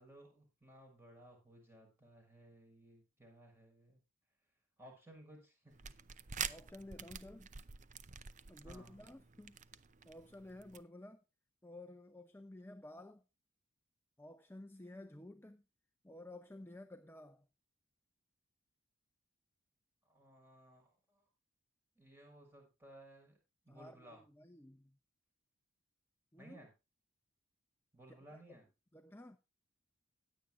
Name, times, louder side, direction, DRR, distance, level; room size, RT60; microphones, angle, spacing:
voice 1, 0.0-4.0 4.8-5.9 8.6-9.0 20.0-21.3 22.0-23.4 23.6-24.2 26.4-26.7 27.9-28.6, right 1 dB, 10° right, 6.6 m, -59 dB
sound 1, 5.7-10.8, right 7 dB, 35° right, 0.6 m, -47 dB
voice 2, 6.4-7.5 8.5-9.6 10.0-11.2 11.6-13.2 14.2-15.6 16.0-17.5 23.7-25.0 26.3-26.6 28.1-28.6 28.9-29.4, left 1 dB, 10° left, 0.7 m, -53 dB
16.5 x 10.5 x 2.6 m
head